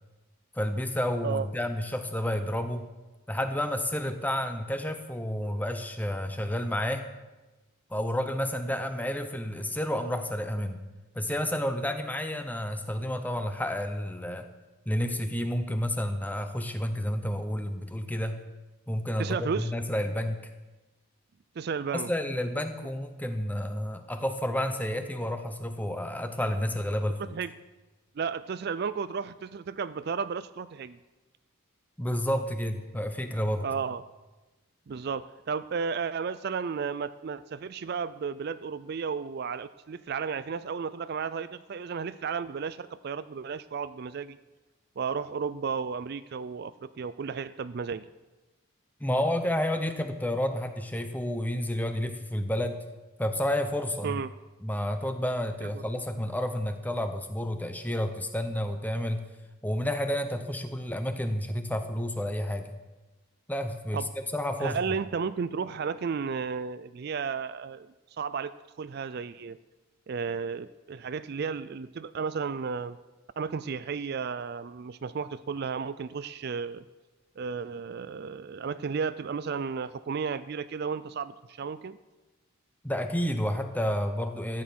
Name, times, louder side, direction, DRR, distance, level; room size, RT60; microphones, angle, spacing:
voice 1, 0.5-2.8 3.3-7.1 7.9-10.8 11.1-14.5 14.9-18.4 18.9-20.5 21.9-27.4 32.0-33.7 49.0-52.8 53.2-54.2 54.6-59.2 59.6-62.8 63.5-64.8 82.8-84.6, left 1 dB, 10° left, 7 dB, 0.9 m, -30 dB
voice 2, 19.2-19.7 21.6-22.1 27.2-27.5 28.2-31.0 33.6-34.0 34.9-44.4 45.0-48.1 54.0-54.3 55.6-55.8 63.9-64.1 64.6-67.9 68.2-69.6 70.1-73.0 73.4-76.8 77.4-82.0, right 5 dB, 50° right, 14 dB, 0.4 m, -33 dB
14.0 x 9.5 x 6.1 m, 1.1 s
head